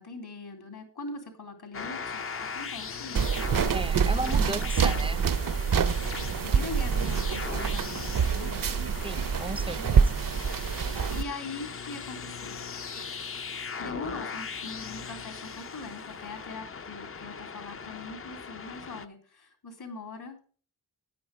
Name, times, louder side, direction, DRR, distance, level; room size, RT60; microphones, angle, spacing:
voice 1, 0.0-4.6 6.1-8.6 9.7-10.1 11.1-12.6 12.9-20.4, left 3 dB, 70° left, 3.4 m, -42 dB
sound 1, 1.7-19.1, left 5 dB, 35° left, 0.5 m, -39 dB
sound 2, 3.2-11.2, right 6 dB, 55° right, 0.6 m, -26 dB
voice 2, 3.7-5.2 9.0-10.2, right 2 dB, 15° right, 0.4 m, -35 dB
9.8 x 9.5 x 4.7 m
wide cardioid pair, 75°, 40 cm